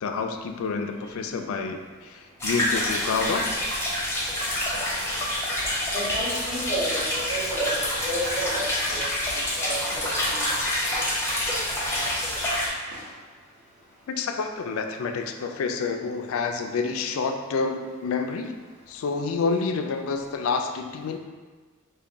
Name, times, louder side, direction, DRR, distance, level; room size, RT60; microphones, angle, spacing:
voice 1, 0.0-3.5 14.1-18.5 18.9-21.2, left 4 dB, 65° left, 5 dB, 0.3 m, -28 dB
sound 1, 2.4-12.7, left 1 dB, 10° left, 0.6 m, -27 dB
voice 2, 5.9-9.1 9.6-10.5, right 1 dB, 35° right, -11 dB, 1.3 m, -31 dB
sound 2, 8.5-12.7 12.9-13.3, right 1 dB, 65° right, 0.8 m, -44 dB
3.4 x 2.2 x 3.8 m, 1.4 s
head